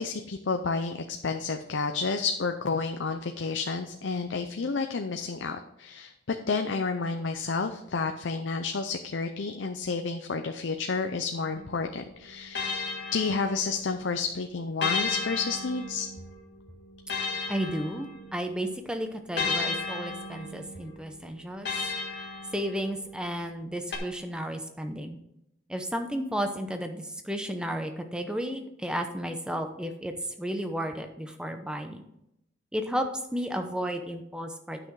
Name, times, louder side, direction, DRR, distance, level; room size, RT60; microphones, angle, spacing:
voice 1, 0.0-6.1 6.5-12.8 13.1-16.1, left 4 dB, 80° left, 6 dB, 0.6 m, -30 dB
sound 1, 11.6-14.0 14.8-18.6 19.4-23.1 23.9-24.0, left 4 dB, 60° left, 1.7 m, -34 dB
voice 2, 17.5-21.7 22.5-25.2 25.7-30.1 30.4-32.0 32.7-34.8, equal, 5° right, 6 dB, 0.7 m, -33 dB
9.9 x 6.0 x 4.8 m, 0.80 s
head